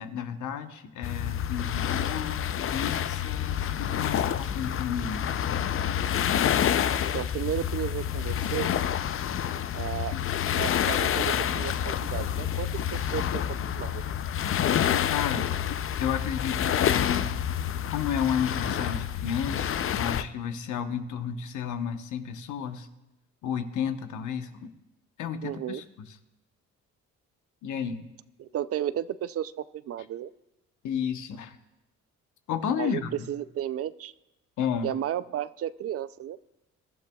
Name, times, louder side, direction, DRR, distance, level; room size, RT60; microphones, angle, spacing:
voice 1, 0.0-5.3 15.1-15.5 16.0-17.3 17.9-22.9 23.4-24.7 25.2-25.8 27.6-28.0 30.8-31.6 32.5-33.1 34.6-34.9, left 8 dB, 75° left, 8 dB, 1.0 m, -32 dB
sound 1, 1.0-20.2, left 9 dB, 45° left, 0.5 m, -28 dB
voice 2, 7.1-8.7 9.7-10.2 10.6-14.0 25.4-25.8 28.4-30.3 32.8-33.0 33.3-34.1 34.8-36.4, right 11 dB, 50° right, 16 dB, 0.4 m, -33 dB
22.5 x 12.0 x 2.3 m, 0.95 s
cardioid pair, 90°, 30 cm